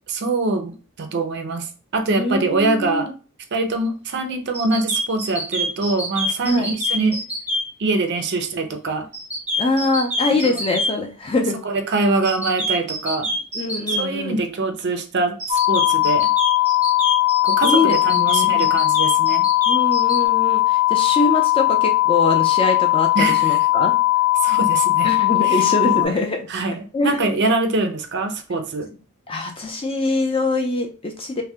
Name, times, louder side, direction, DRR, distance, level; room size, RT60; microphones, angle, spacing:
voice 1, 0.1-1.7 1.9-3.1 3.5-7.2 7.8-9.1 10.4-10.6 11.6-13.3 14.0-16.3 17.4-19.5 23.1-23.6 24.4-25.1 25.4-26.2 26.5-28.9, right 3 dB, 50° right, 6 dB, 0.5 m, -24 dB
voice 2, 2.1-3.1 6.4-6.7 9.6-11.6 13.5-14.4 17.6-18.7 19.7-24.0 25.0-26.5 26.9-27.4 29.3-31.4, left 2 dB, 25° left, 3 dB, 0.5 m, -23 dB
sound 1, 4.5-7.6 9.1-10.9 12.2-14.0 15.4-20.2, left 1 dB, 5° right, 0.8 m, -25 dB
sound 2, 15.5-26.1, left 17 dB, 85° left, 0.3 m, -18 dB
2.6 x 2.1 x 3.4 m, 0.35 s
head